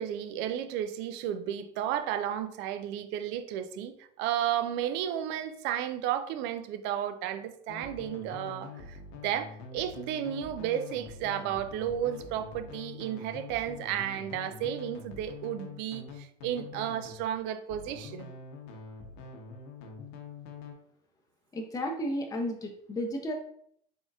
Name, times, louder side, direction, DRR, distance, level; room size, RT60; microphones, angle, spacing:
voice 1, 0.0-9.0 9.2-18.3, right 10 dB, 60° right, 0.5 m, -33 dB
sound 1, 7.7-17.2 17.7-20.8, left 4 dB, 65° left, 0.8 m, -45 dB
voice 2, 21.5-23.3, equal, 15° left, 0.6 m, -33 dB
3.8 x 3.5 x 2.3 m
hypercardioid pair, 75°, 21 cm